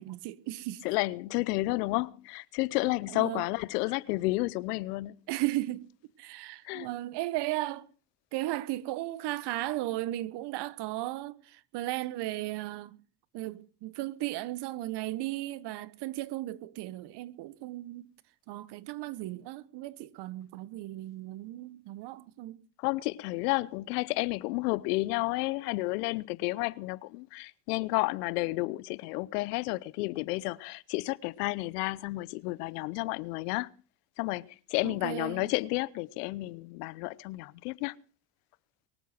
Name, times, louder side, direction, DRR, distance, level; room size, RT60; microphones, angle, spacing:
voice 1, 0.0-0.8 3.1-3.4 5.3-5.9 6.2-7.8 8.3-13.0 13.3-18.1 18.5-22.6 34.8-35.5, right 16 dB, 60° right, 1.2 m, -35 dB
voice 2, 0.8-5.2 6.6-6.9 22.8-33.7 34.2-37.9, left 21 dB, 75° left, 0.8 m, -31 dB
23.0 x 8.2 x 5.9 m
hypercardioid pair, 75°, 46 cm